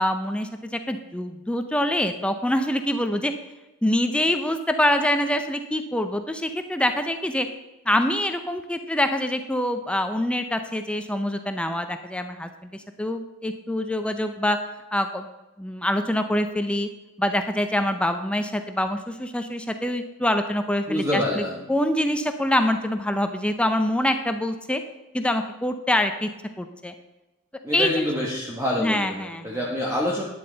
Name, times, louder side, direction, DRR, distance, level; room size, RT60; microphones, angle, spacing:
voice 1, 0.0-3.3 3.8-7.5 7.9-14.6 14.9-15.3 15.6-16.9 17.2-21.4 21.7-24.8 25.1-26.3 26.6-26.9 27.7-28.1 28.8-29.6, left 1 dB, 5° left, 7 dB, 0.5 m, -25 dB
voice 2, 20.9-21.6 27.6-30.2, left 1 dB, 15° right, -3 dB, 1.2 m, -26 dB
11.5 x 9.7 x 3.9 m, 1.1 s
head